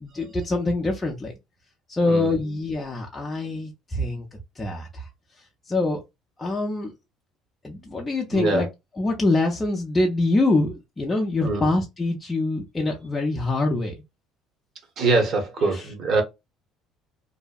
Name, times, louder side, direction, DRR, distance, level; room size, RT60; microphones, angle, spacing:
voice 1, 0.0-1.3 1.9-5.1 5.7-6.0 6.4-6.9 7.6-8.7 9.0-13.9 15.7-15.9, left 2 dB, 15° left, 0.5 m, -25 dB
voice 2, 2.0-2.3 8.3-8.7 11.4-11.7 15.0-16.2, right 3 dB, 45° right, 0.9 m, -23 dB
2.6 x 2.0 x 2.3 m
cardioid pair, 145°, 0 cm